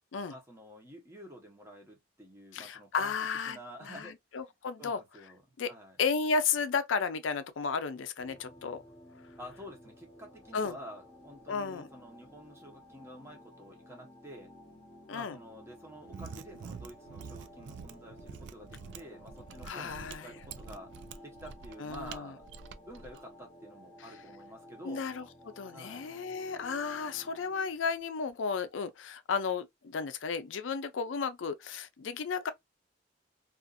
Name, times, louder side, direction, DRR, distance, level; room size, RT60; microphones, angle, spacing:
voice 1, 0.3-4.2 4.8-5.4 5.7-6.0 9.4-14.5 15.1-20.9 21.2-22.4 22.9-25.1 25.7-26.1, equal, 15° right, 0.9 m, -49 dB
voice 2, 2.5-5.0 5.6-5.7 6.0-8.8 10.5-10.7 11.5-11.9 15.1-15.4 19.6-20.3 21.8-22.3 24.0-24.1 24.8-25.3 25.6-32.5, left 5 dB, 85° left, 0.5 m, -33 dB
sound 1, 8.2-27.8, left 1 dB, 15° left, 0.8 m, -54 dB
Mechanisms, 16.0-23.2, right 5 dB, 70° right, 0.3 m, -47 dB
2.5 x 2.4 x 2.3 m
head